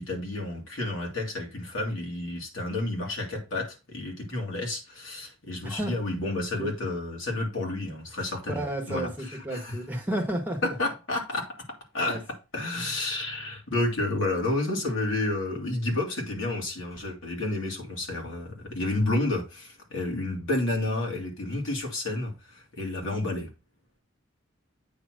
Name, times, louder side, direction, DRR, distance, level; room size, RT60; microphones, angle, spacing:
voice 1, 0.0-9.8 10.6-12.2 12.5-23.5, left 2 dB, 70° left, 2.3 m, -30 dB
voice 2, 5.6-5.9 6.6-6.7 8.5-10.7 12.0-12.2 14.2-14.4, right 1 dB, 10° right, 1.4 m, -32 dB
8.6 x 3.0 x 6.2 m
head